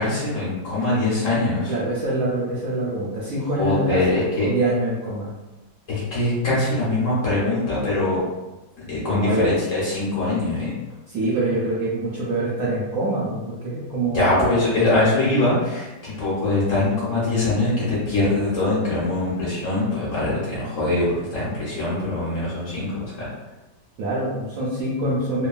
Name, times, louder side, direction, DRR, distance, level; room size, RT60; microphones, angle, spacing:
voice 1, 0.0-1.7 3.6-4.5 5.9-8.2 8.9-10.7 14.1-23.3, left 2 dB, 55° left, -8 dB, 1.1 m, -23 dB
voice 2, 1.7-5.3 9.1-9.5 11.1-14.5 24.0-25.5, right 2 dB, 65° right, -6 dB, 0.9 m, -25 dB
3.0 x 2.2 x 2.3 m, 1.1 s
omnidirectional pair, 1.9 m